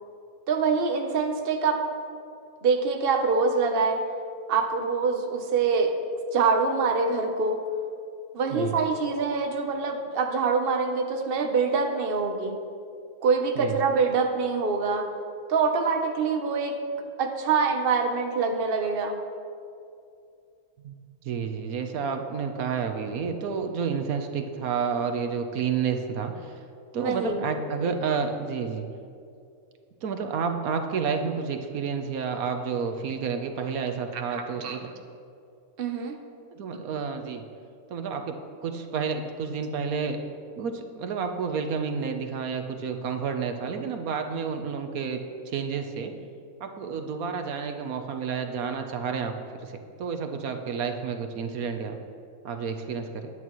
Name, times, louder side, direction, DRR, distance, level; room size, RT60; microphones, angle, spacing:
voice 1, 0.5-1.8 2.6-4.0 4.5-5.9 6.3-7.6 8.3-12.6 13.2-15.1 15.5-16.7 17.2-19.2 27.0-27.4 34.1-34.8 35.8-36.2, right 4 dB, 45° right, 4 dB, 1.1 m, -25 dB
voice 2, 21.2-26.6 26.9-28.9 30.0-34.9 36.5-37.5 37.9-40.2 40.6-45.2 45.5-46.1 46.6-52.0 52.4-53.3, right 6 dB, 80° right, 5 dB, 1.3 m, -30 dB
20.5 x 9.3 x 3.1 m, 2.5 s
omnidirectional pair, 1.5 m